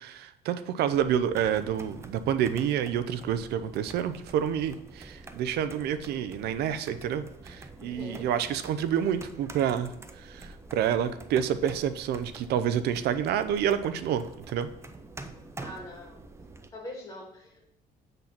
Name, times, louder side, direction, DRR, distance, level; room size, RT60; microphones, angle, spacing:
voice 1, 0.0-14.7, right 9 dB, 75° right, 11 dB, 0.6 m, -28 dB
sound 1, 0.9-16.7, right 2 dB, 15° right, 0.5 m, -47 dB
voice 2, 7.8-8.3 15.6-16.2 16.7-17.7, left 1 dB, 20° left, -1 dB, 2.5 m, -42 dB
7.3 x 4.0 x 5.8 m, 0.74 s
cardioid pair, 110°, 17 cm